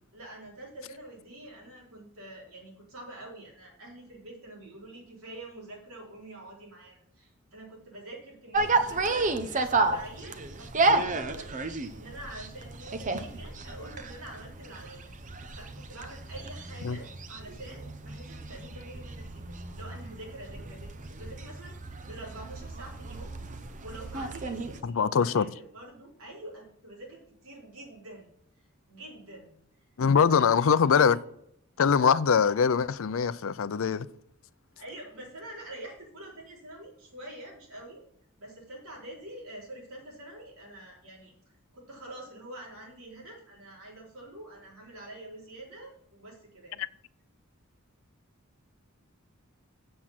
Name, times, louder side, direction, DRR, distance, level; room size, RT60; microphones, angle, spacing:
voice 1, 0.1-11.5 11.9-19.4 19.8-20.9 21.2-23.4 23.6-28.3 28.9-29.8 30.3-30.5 31.1-31.2 34.8-38.0 38.4-41.3 41.7-46.8, right 1 dB, 85° right, 4.5 m, -46 dB
sound 1, 8.5-24.8, right 3 dB, 35° right, 0.8 m, -32 dB
voice 2, 24.8-25.5 30.0-31.2 31.8-34.1 46.8-46.9, left 6 dB, 65° left, 0.5 m, -23 dB
8.0 x 7.5 x 5.9 m
head